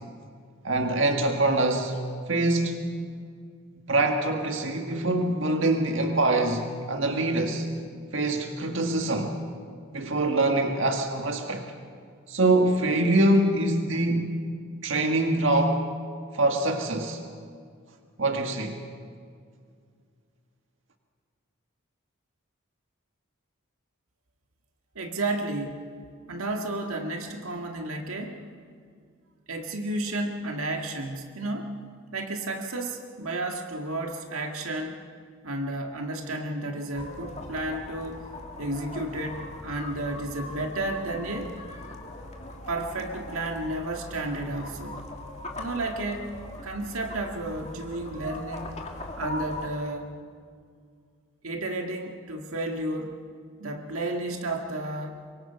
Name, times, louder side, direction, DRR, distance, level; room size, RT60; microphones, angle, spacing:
voice 1, 0.6-2.0 2.3-2.9 3.9-7.7 8.1-9.3 9.9-11.6 12.3-14.4 14.8-15.8 16.3-17.2 18.2-18.8, right 2 dB, 60° right, 4 dB, 1.9 m, -24 dB
voice 2, 25.0-25.8 26.3-28.4 29.5-31.8 32.1-35.0 35.4-38.2 38.6-41.6 42.7-45.0 45.6-46.3 46.6-48.8 49.2-50.1 51.4-53.1 53.6-55.2, right 2 dB, 85° right, 3 dB, 1.9 m, -32 dB
sound 1, 36.9-49.7, left 2 dB, 30° left, 2.2 m, -40 dB
25.5 x 23.0 x 5.8 m, 2.1 s
head